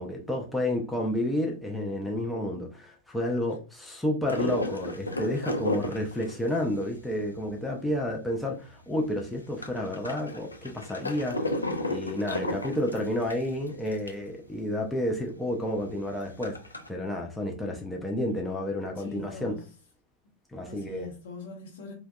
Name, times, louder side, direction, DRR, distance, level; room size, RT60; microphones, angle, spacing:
voice 1, 0.0-11.6 11.9-16.6 16.9-19.6 20.5-21.1, left 1 dB, 5° left, 0.4 m, -30 dB
sound 1, 4.3-8.3 8.7-8.8 9.0-14.3 14.7-14.8 15.0-15.1 15.6-16.9, left 1 dB, 80° left, 0.4 m, -33 dB
voice 2, 19.0-19.6 20.6-21.9, left 4 dB, 60° left, 0.8 m, -42 dB
2.5 x 2.2 x 2.2 m
figure-of-eight pair, 90°, 0 cm